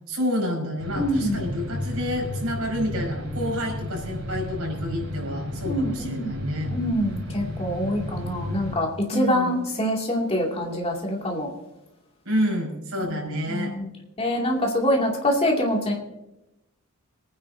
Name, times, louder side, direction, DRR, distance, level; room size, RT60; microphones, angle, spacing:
voice 1, 0.1-6.7 9.1-9.5 12.3-13.7, equal, 90° right, -1 dB, 5.2 m, -29 dB
sound 1, 0.8-8.8, left 1 dB, 75° right, 5.1 m, -32 dB
voice 2, 1.0-1.4 5.6-6.3 6.7-11.5 13.1-13.2 13.5-13.9 14.2-15.9, equal, 30° left, -1 dB, 2.6 m, -25 dB
25.5 x 9.7 x 2.8 m, 0.93 s
head